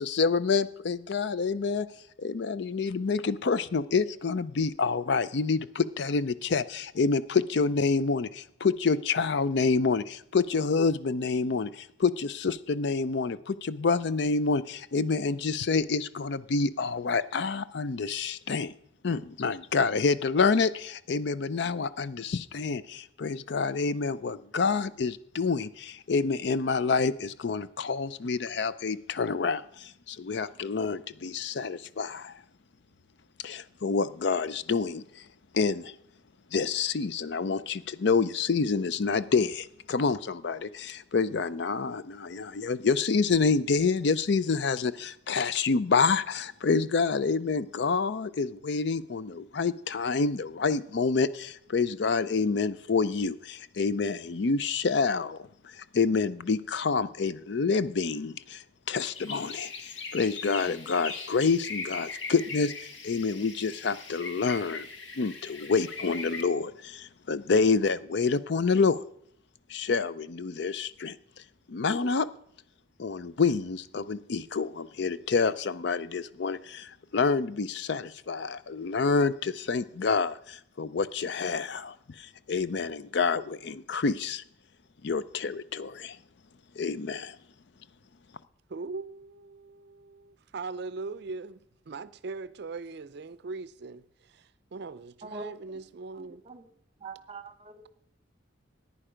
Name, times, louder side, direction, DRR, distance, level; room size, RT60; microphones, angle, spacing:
voice 1, 0.0-1.9 2.2-18.7 19.0-32.4 33.4-35.3 35.5-35.9 36.5-64.9 65.1-69.0 69.7-71.2 71.7-72.3 73.0-84.4 85.0-86.2 86.8-87.4, left 4 dB, 60° left, 0.5 m, -28 dB
sound 1, 59.1-66.4, left 4 dB, 80° left, 1.5 m, -40 dB
voice 2, 88.7-96.4, right 4 dB, 60° right, 0.5 m, -40 dB
voice 3, 95.2-95.8 96.2-96.7 97.0-97.9, right 3 dB, 30° right, 1.0 m, -44 dB
14.5 x 9.9 x 5.0 m
head